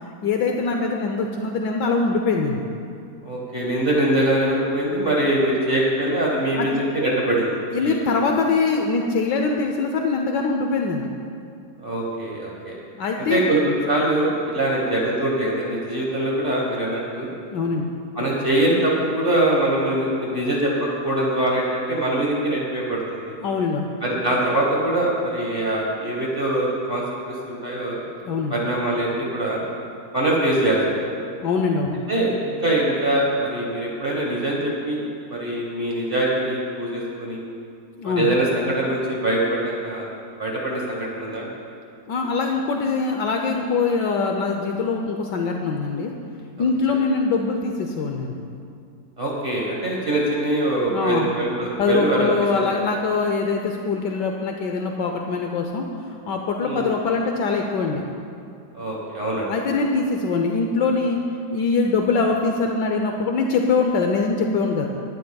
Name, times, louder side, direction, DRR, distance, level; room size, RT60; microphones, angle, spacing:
voice 1, 0.2-2.6 6.6-6.7 7.7-11.1 13.0-13.5 17.5-17.9 23.4-23.9 28.2-28.6 31.4-32.0 38.0-38.3 42.1-46.1 46.6-48.4 50.9-51.3 51.8-58.0 59.5-61.2 61.5-64.9, left 4 dB, 70° left, 2 dB, 1.3 m, -23 dB
voice 2, 3.2-8.2 11.8-12.8 13.2-17.3 18.1-23.3 24.0-28.0 28.5-29.6 30.1-31.1 32.1-37.4 38.0-40.1 40.4-41.5 49.2-52.6 56.6-56.9 58.7-59.8, right 1 dB, 30° right, -4 dB, 1.4 m, -23 dB
20.0 x 11.0 x 2.3 m, 2.5 s
omnidirectional pair, 2.0 m